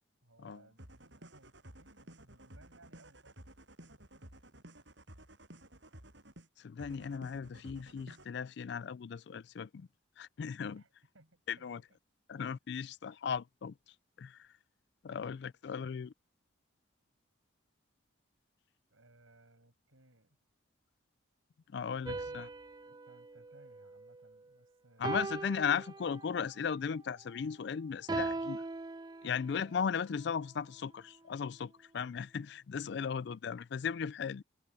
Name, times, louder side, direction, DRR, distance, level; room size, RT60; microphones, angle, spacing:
voice 1, 0.2-3.4 3.8-4.3 10.7-10.9 11.1-11.8 12.7-12.8 15.1-15.3 18.9-20.4 22.1-25.5, right 2 dB, 90° right, 6.7 m, -63 dB
sound 1, 0.8-6.5 6.8-8.3, right 1 dB, 60° right, 7.9 m, -54 dB
voice 2, 6.6-9.9 10.2-10.8 11.5-11.8 12.3-14.5 15.0-16.1 21.7-22.5 25.0-28.6 29.2-34.4, left 6 dB, 55° left, 0.3 m, -37 dB
sound 2, 22.0-24.5 25.0-26.5 28.1-29.8, right 3 dB, 20° right, 0.4 m, -40 dB
head